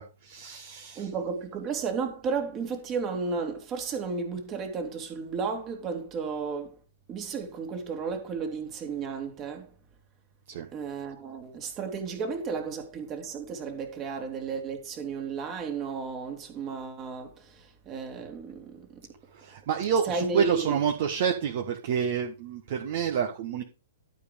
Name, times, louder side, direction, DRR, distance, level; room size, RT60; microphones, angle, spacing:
voice 1, 0.0-1.1 10.5-10.7 19.3-23.6, right 7 dB, 50° right, 1.4 m, -28 dB
voice 2, 1.0-6.7 7.1-9.7 10.7-19.0 20.1-20.6, right 5 dB, 25° right, 2.7 m, -33 dB
12.0 x 5.3 x 5.2 m
figure-of-eight pair, 115°, 0 cm